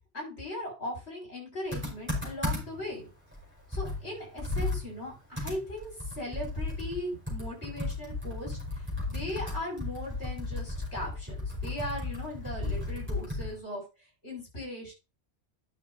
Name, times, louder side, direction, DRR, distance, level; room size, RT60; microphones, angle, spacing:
voice 1, 0.1-3.1 3.7-13.8 14.2-14.9, left 1 dB, 65° left, -1 dB, 6.3 m, -38 dB
Computer keyboard, 1.7-2.9 3.3-3.4 3.7-13.6, left 2 dB, 10° right, 4.9 m, -34 dB
10.5 x 6.4 x 4.1 m, 0.28 s
omnidirectional pair, 1.1 m